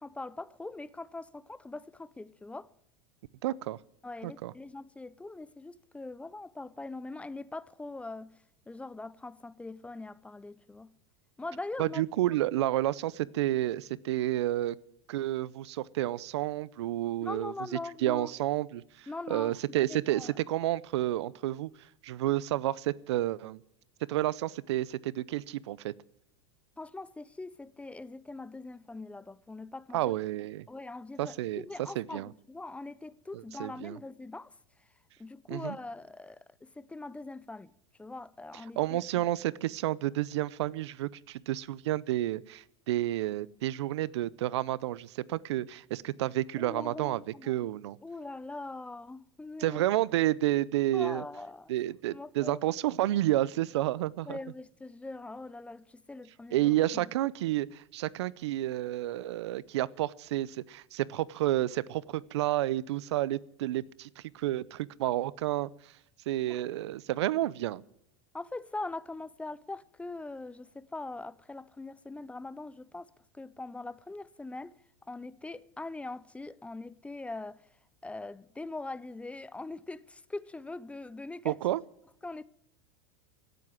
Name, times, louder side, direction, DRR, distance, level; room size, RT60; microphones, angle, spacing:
voice 1, 0.0-2.7 4.0-8.4 8.7-10.9 11.4-12.0 17.2-18.3 19.1-19.6 19.9-20.3 26.8-30.1 30.7-34.5 35.2-37.7 38.0-39.3 46.6-47.7 48.0-49.9 50.9-51.7 52.1-52.6 54.2-57.0 66.5-66.6 68.3-74.7 75.1-77.6 78.0-81.6 82.2-82.4, left 2 dB, 10° left, 0.5 m, -42 dB
voice 2, 3.4-3.8 4.2-4.5 11.8-14.8 15.1-17.5 18.0-21.7 22.0-23.6 24.1-25.9 29.9-30.7 31.2-32.3 33.3-34.0 35.5-35.7 38.8-47.2 47.5-48.0 49.6-51.2 51.7-54.4 56.5-65.7 66.3-67.8 81.4-81.8, right 15 dB, 75° right, 0.6 m, -30 dB
17.0 x 7.8 x 9.7 m
hypercardioid pair, 110°, 14 cm